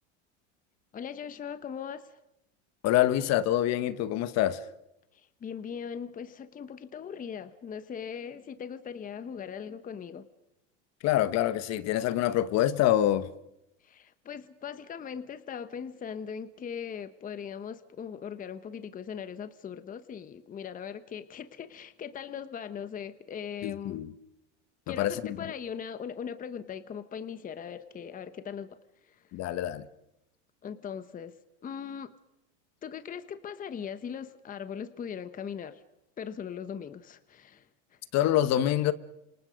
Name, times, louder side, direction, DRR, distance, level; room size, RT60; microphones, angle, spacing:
voice 1, 0.9-2.2 5.1-10.2 13.8-24.0 24.9-28.7 29.0-29.3 30.6-31.4 31.6-32.1 32.8-35.8 36.2-38.0, left 7 dB, 20° left, 1.1 m, -40 dB
voice 2, 2.8-4.6 11.0-13.3 23.6-24.1 24.9-25.5 29.3-29.8 38.1-38.9, left 12 dB, 45° left, 1.3 m, -26 dB
30.0 x 27.0 x 5.2 m
supercardioid pair, 120°, 37 cm